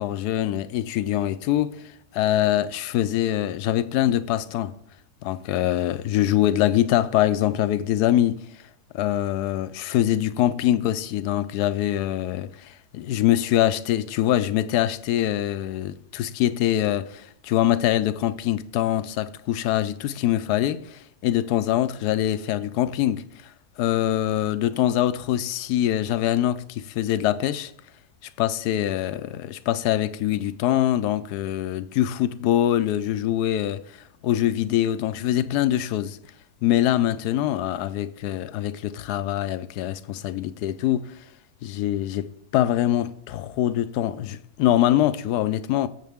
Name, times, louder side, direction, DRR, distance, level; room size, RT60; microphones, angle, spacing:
voice 1, 0.0-4.7 5.2-8.4 8.9-27.7 28.4-36.2 36.6-41.2 41.6-45.9, left 12 dB, 80° left, 1.1 m, -24 dB
17.0 x 7.4 x 3.5 m
omnidirectional pair, 1.7 m